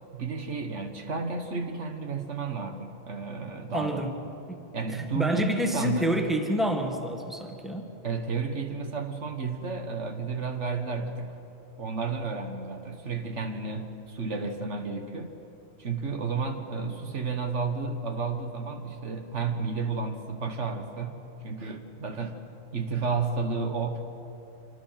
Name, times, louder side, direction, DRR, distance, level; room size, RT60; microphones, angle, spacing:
voice 1, 0.1-4.1 4.7-6.2 8.0-11.3 11.8-15.4 15.8-21.2 21.4-22.4 22.7-24.0, right 4 dB, 70° right, 5 dB, 1.8 m, -32 dB
voice 2, 3.7-4.2 4.9-7.9, equal, ahead, 3 dB, 1.8 m, -28 dB
26.0 x 25.5 x 5.9 m, 3.0 s
omnidirectional pair, 1.3 m